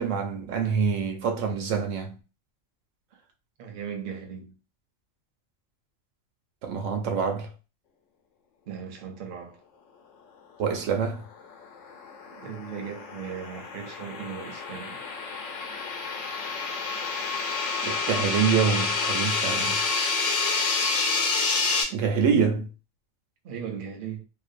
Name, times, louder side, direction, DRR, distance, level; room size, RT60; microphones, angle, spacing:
voice 1, 0.0-2.2 6.6-7.5 10.6-11.3 17.8-19.8 21.9-22.7, right 6 dB, 80° right, 0.9 m, -26 dB
voice 2, 3.6-4.6 8.7-9.6 12.3-15.0 23.4-24.3, right 7 dB, 55° right, 0.6 m, -37 dB
sound 1, 11.4-21.8, left 4 dB, 85° left, 1.0 m, -28 dB
2.5 x 2.0 x 2.4 m
omnidirectional pair, 1.3 m